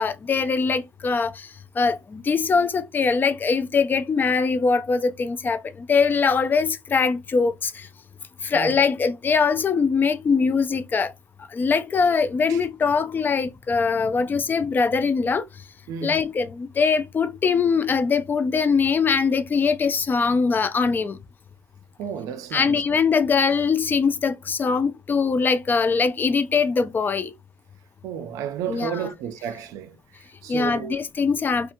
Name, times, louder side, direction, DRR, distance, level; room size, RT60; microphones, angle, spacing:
voice 1, 0.0-1.5 1.8-7.9 8.4-11.1 11.5-15.5 16.0-21.2 22.5-27.3 28.7-28.9 30.5-31.7, left 5 dB, 35° left, 0.4 m, -22 dB
voice 2, 15.9-16.2 22.0-22.8 28.0-31.0, right 8 dB, 85° right, 0.4 m, -32 dB
2.8 x 2.3 x 2.6 m
cardioid pair, 85°, 6 cm